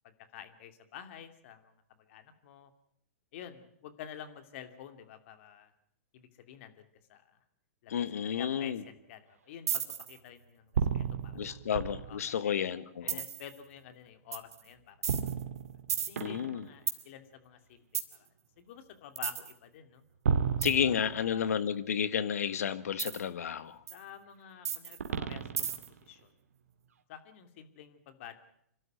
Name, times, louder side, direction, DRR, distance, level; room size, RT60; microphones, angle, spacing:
voice 1, 0.0-1.7 2.1-2.7 3.3-5.7 6.1-7.3 7.8-9.8 10.1-11.8 12.0-12.6 13.0-15.0 16.1-17.8 18.1-18.3 18.6-20.0 20.8-21.6 23.9-26.3 27.1-28.4, left 9 dB, 55° left, 9 dB, 2.6 m, -50 dB
voice 2, 7.9-8.8 11.3-13.2 16.2-16.7 20.6-23.8, left 8 dB, 75° left, 14 dB, 1.5 m, -31 dB
sound 1, 9.7-10.2 10.7-12.3 13.1-13.5 14.3-14.5 15.0-17.0 17.9-18.2 19.2-19.5 20.3-21.4 23.0-23.2 23.9-24.0 24.6-26.0, right 7 dB, 75° right, 2.1 m, -32 dB
27.0 x 12.5 x 9.2 m, 0.69 s
hypercardioid pair, 125°, 8 cm